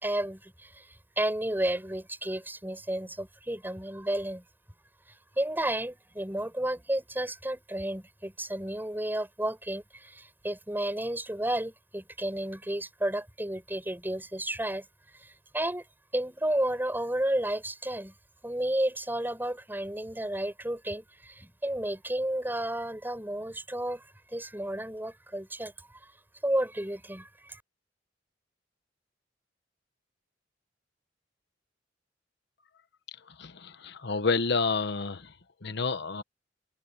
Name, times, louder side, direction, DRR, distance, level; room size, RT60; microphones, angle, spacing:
voice 1, 0.0-4.4 5.4-15.8 16.1-18.1 18.4-24.0 24.3-25.7 26.4-27.6, right 1 dB, 10° right, 7.9 m, -32 dB
voice 2, 33.4-35.2 35.6-36.2, left 4 dB, 65° left, 1.2 m, -29 dB
head